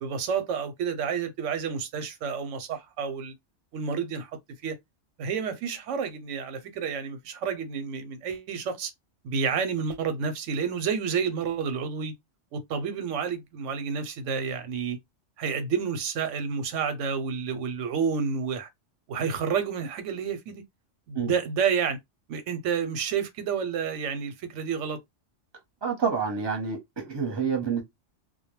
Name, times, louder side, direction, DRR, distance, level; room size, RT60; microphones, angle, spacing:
voice 1, 0.0-3.3 3.7-4.3 4.6-4.8 5.2-8.9 9.2-12.1 12.5-15.0 15.4-18.7 19.1-20.6 21.1-22.0 22.3-25.0, right 6 dB, 90° right, 0.9 m, -30 dB
voice 2, 25.8-27.8, right 6 dB, 25° right, 0.7 m, -28 dB
2.2 x 2.1 x 2.9 m
omnidirectional pair, 1.2 m